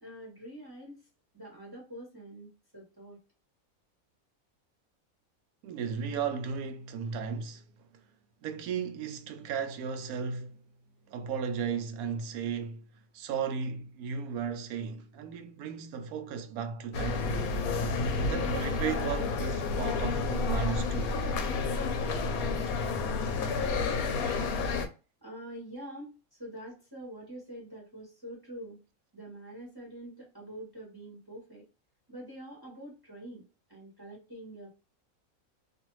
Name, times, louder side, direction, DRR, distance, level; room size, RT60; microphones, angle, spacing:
voice 1, 0.0-1.1 1.3-3.2 25.2-28.8 29.1-31.7 32.1-34.7, right 1 dB, 20° right, 1.0 m, -45 dB
voice 2, 5.6-7.7 8.4-10.6 11.1-12.8 13.1-17.3 18.3-21.2, right 6 dB, 85° right, 1.1 m, -35 dB
sound 1, 16.9-24.9, left 4 dB, 80° left, 1.1 m, -30 dB
2.6 x 2.5 x 2.9 m
omnidirectional pair, 1.5 m